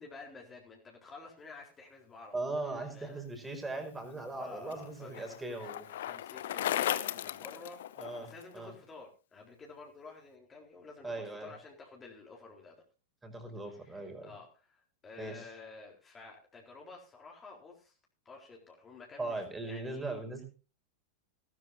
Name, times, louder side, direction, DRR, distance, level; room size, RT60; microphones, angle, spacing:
voice 1, 0.0-3.3 4.3-7.8 8.2-12.7 13.7-18.0 18.2-20.4, left 4 dB, 20° left, 0 dB, 4.1 m, -51 dB
voice 2, 2.3-5.8 8.0-8.7 11.0-11.5 13.2-14.3 15.2-15.4 19.2-20.4, right 2 dB, 10° right, 5 dB, 4.9 m, -39 dB
Bicycle, 4.0-8.4, left 12 dB, 60° left, 0.8 m, -36 dB
18.5 x 12.5 x 2.7 m, 0.35 s
figure-of-eight pair, 90°, 0 cm